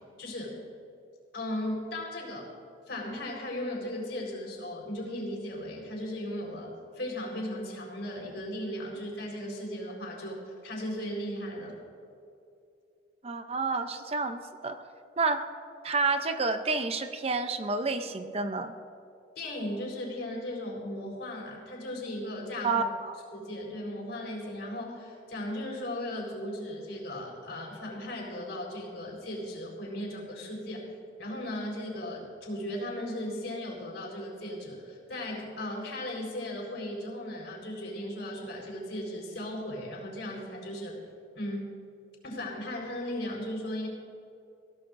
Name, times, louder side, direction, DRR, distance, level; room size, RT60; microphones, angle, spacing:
voice 1, 0.2-0.6 1.3-2.5 2.9-11.8 19.4-22.8 23.3-30.9 31.2-40.9 41.3-41.7 42.2-43.9, left 1 dB, 65° left, -1 dB, 4.4 m, -36 dB
voice 2, 13.2-14.8 15.2-15.4 15.8-18.7 22.6-23.1, right 3 dB, 35° right, 8 dB, 0.6 m, -29 dB
22.5 x 16.0 x 2.6 m, 2.6 s
head